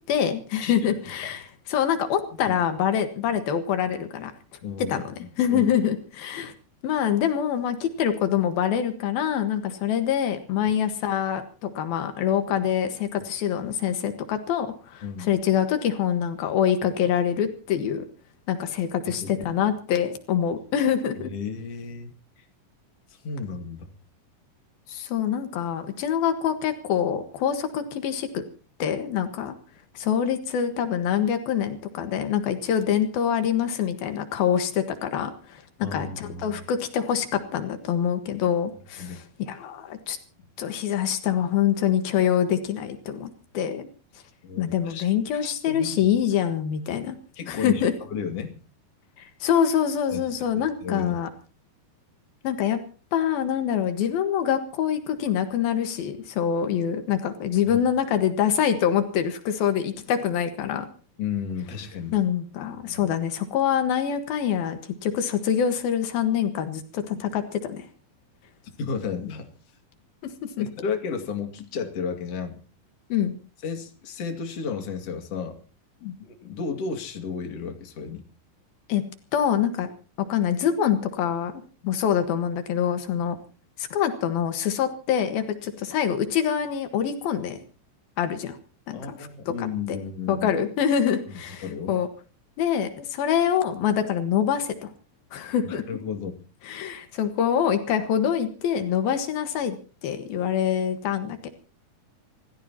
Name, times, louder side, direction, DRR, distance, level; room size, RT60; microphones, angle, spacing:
voice 1, 0.1-1.4 1.7-4.3 4.8-5.0 5.4-6.5 6.8-18.0 18.5-21.3 24.9-28.3 28.8-29.5 29.9-39.2 39.5-40.2 40.6-43.9 44.6-47.2 47.5-47.9 49.4-51.3 52.4-52.8 53.1-60.9 62.1-67.9 70.2-70.3 70.6-70.7 73.1-73.3 76.0-76.1 78.9-79.0 79.3-79.9 80.3-81.5 81.9-83.4 83.8-87.6 88.2-88.6 88.9-90.0 90.3-92.1 92.6-94.9 95.3-95.8 96.6-99.8 100.0-101.5, left 9 dB, 85° left, 8 dB, 3.4 m, -25 dB
voice 2, 4.6-5.6 15.0-15.3 19.1-19.7 21.2-22.4 23.1-23.9 35.8-36.6 39.0-39.2 44.4-45.1 45.3-46.2 47.4-48.5 50.1-50.3 50.5-51.2 57.6-57.8 61.2-62.2 62.8-63.1 68.8-69.5 70.6-72.6 73.6-75.6 76.2-78.2 88.9-90.5 91.3-92.0 95.6-96.4, left 6 dB, 45° left, 4 dB, 3.0 m, -33 dB
27.5 x 15.0 x 2.9 m, 0.37 s
omnidirectional pair, 4.2 m